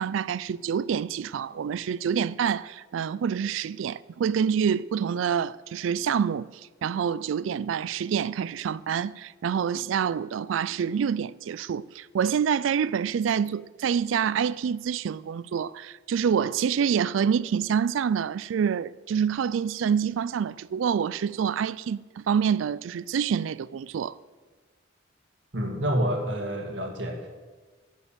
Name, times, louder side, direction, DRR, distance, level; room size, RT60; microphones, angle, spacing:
voice 1, 0.0-6.5 6.8-24.2, right 7 dB, 90° right, 0.3 m, -27 dB
voice 2, 25.5-27.3, equal, 70° right, 2.0 m, -28 dB
11.5 x 6.9 x 7.5 m
head